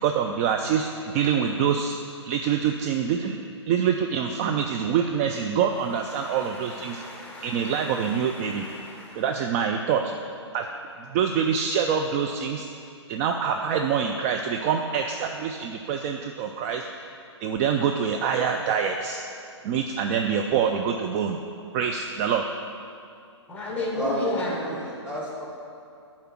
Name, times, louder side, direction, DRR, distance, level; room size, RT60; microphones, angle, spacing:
voice 1, 0.0-2.0 2.2-3.4 3.6-7.0 7.4-8.6 9.2-10.1 10.5-10.6 11.1-12.7 13.1-16.9 17.4-19.2 19.6-21.4 21.7-22.4, right 7 dB, 30° right, 4 dB, 0.4 m, -25 dB
voice 2, 6.1-9.2 23.5-24.6, left 2 dB, 10° left, -2 dB, 1.6 m, -34 dB
voice 3, 23.9-25.4, right 1 dB, 5° right, -7 dB, 2.0 m, -31 dB
10.0 x 4.3 x 5.9 m, 2.4 s
figure-of-eight pair, 120°, 15 cm